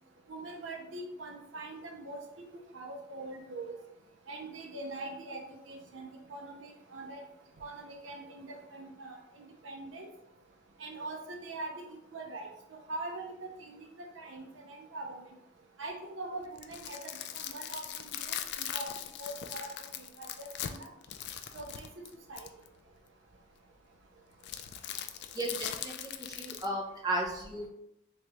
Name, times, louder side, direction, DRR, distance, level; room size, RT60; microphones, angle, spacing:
voice 1, 0.3-2.2 2.7-3.8 4.3-7.2 7.6-10.1 10.8-11.8 12.1-12.5 12.9-15.2 15.8-18.9 19.2-19.7 20.2-20.9 21.5-21.9 22.3-22.5, right 2 dB, 75° right, 2 dB, 0.6 m, -43 dB
sound 1, 16.4-22.7 24.4-26.7, left 10 dB, 60° left, 0.3 m, -40 dB
voice 2, 25.3-27.7, right 1 dB, 20° right, -2 dB, 0.7 m, -35 dB
3.5 x 3.1 x 3.0 m, 0.83 s
head